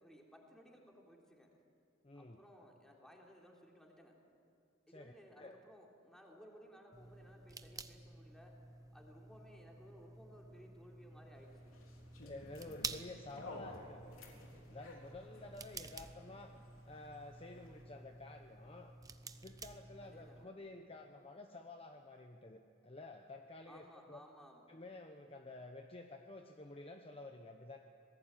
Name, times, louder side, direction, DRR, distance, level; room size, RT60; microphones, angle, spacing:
voice 1, 0.0-1.5 2.2-4.1 4.9-8.5 8.9-11.8 20.0-20.5 23.7-24.7, equal, 5° left, -1 dB, 3.5 m, -59 dB
voice 2, 2.0-2.4 4.9-5.6 12.1-14.2 14.7-16.5 16.8-18.9 19.4-24.2 24.7-27.8, left 2 dB, 30° left, 4 dB, 1.0 m, -51 dB
sound 1, 6.9-20.5, right 4 dB, 15° right, 0.9 m, -51 dB
sound 2, 11.4-17.8, left 1 dB, 80° left, 3.8 m, -55 dB
26.5 x 19.5 x 9.0 m, 2.5 s
head